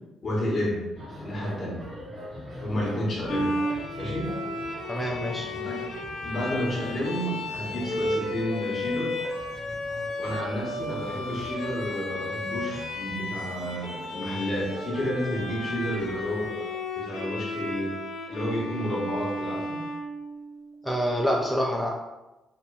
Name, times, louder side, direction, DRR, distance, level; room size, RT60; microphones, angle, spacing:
voice 1, 0.2-1.8 2.6-3.6 4.0-4.3 5.6-5.8 6.2-9.2 10.2-16.7 17.1-17.9 18.3-19.8, equal, 50° left, -4 dB, 1.0 m, -31 dB
sound 1, 0.9-16.5, left 1 dB, 50° right, 1.3 m, -44 dB
Bowed string instrument, 3.3-20.7, left 1 dB, 75° left, 0.4 m, -33 dB
voice 2, 4.9-5.5 20.8-21.9, equal, ahead, -1 dB, 0.3 m, -26 dB
2.9 x 2.1 x 2.2 m, 1.0 s
cardioid pair, 90°, 0 cm